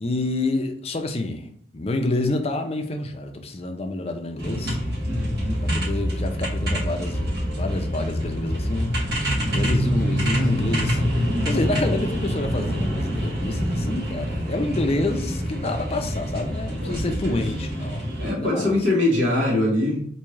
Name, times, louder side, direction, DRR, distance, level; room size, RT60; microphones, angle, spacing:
voice 1, 0.0-1.5 1.7-4.8 5.6-9.0 9.5-18.1 18.4-18.7, left 2 dB, 30° left, 0.4 m, -28 dB
sound 1, 4.4-18.3, equal, 50° right, 1.5 m, -26 dB
voice 2, 5.1-5.6 10.0-10.4 16.8-17.4 18.2-20.1, left 1 dB, 70° right, 1.4 m, -24 dB
3.5 x 2.7 x 3.1 m
head